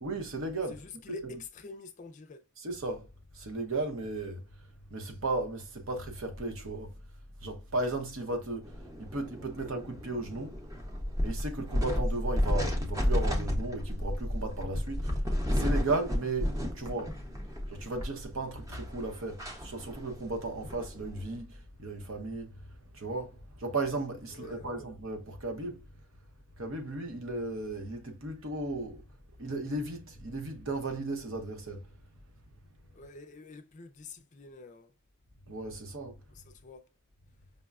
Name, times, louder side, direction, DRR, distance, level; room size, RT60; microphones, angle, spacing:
voice 1, 0.0-1.4 2.6-7.0 7.4-10.6 11.2-15.2 15.5-17.2 17.7-25.9 26.6-31.9 35.5-36.2, right 2 dB, 65° right, 0.9 m, -35 dB
voice 2, 0.7-2.4 24.3-24.9 32.9-34.9 36.3-36.9, left 3 dB, 35° left, 0.4 m, -47 dB
sound 1, 8.6-21.4, equal, 15° right, 0.7 m, -32 dB
5.3 x 2.2 x 2.3 m
head